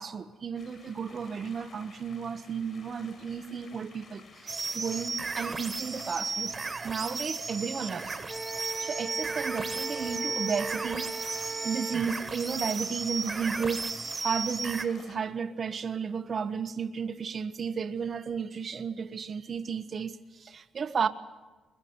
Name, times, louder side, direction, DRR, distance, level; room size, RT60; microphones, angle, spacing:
voice 1, 0.0-6.5 6.8-8.2 8.5-11.1 11.6-13.9 14.2-21.1, right 6 dB, 45° right, 1.0 m, -33 dB
sound 1, 0.6-15.2, left 4 dB, 50° left, 7.0 m, -52 dB
sound 2, 4.5-14.8, right 4 dB, 30° right, 1.7 m, -35 dB
Wind instrument woodwind instrument, 8.3-12.2, right 3 dB, 15° right, 1.7 m, -38 dB
22.0 x 21.0 x 9.5 m
cardioid pair, 90°, 0 cm